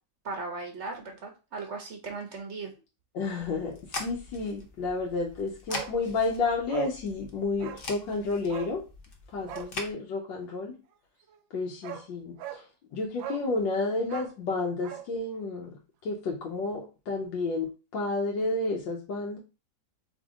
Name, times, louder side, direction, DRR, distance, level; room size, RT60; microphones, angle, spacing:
voice 1, 0.2-2.7, right 3 dB, 50° right, 3 dB, 0.9 m, -37 dB
voice 2, 3.1-8.8 9.3-10.8 11.5-12.6 12.9-15.7 16.0-19.4, left 3 dB, 75° left, -1 dB, 1.5 m, -31 dB
sound 1, 3.4-9.9, left 3 dB, 45° left, 0.7 m, -42 dB
Bark, 5.7-6.0 6.3-6.4 6.7-7.0 7.6-7.9 8.5-8.8 9.4-9.7 11.3-11.4 11.8-12.1 12.4-12.6 13.2-13.5 14.0-15.1 15.4-15.5, right 10 dB, 85° right, 1.4 m, -39 dB
3.7 x 3.6 x 3.7 m, 0.30 s
omnidirectional pair, 2.0 m